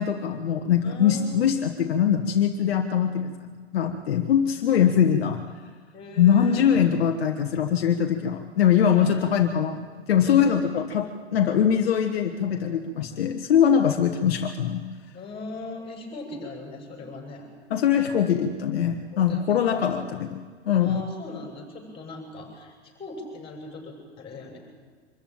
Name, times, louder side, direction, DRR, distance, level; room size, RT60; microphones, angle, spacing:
voice 1, 0.0-5.4 6.2-9.8 10.1-14.8 17.7-21.0, left 8 dB, 60° left, 4 dB, 1.5 m, -22 dB
voice 2, 0.8-1.5 5.9-6.7 8.8-9.2 10.3-10.5 15.1-17.5 19.1-19.8 20.8-24.6, left 2 dB, 15° left, 1 dB, 6.9 m, -39 dB
25.0 x 14.5 x 9.0 m, 1.5 s
hypercardioid pair, 115°, 34 cm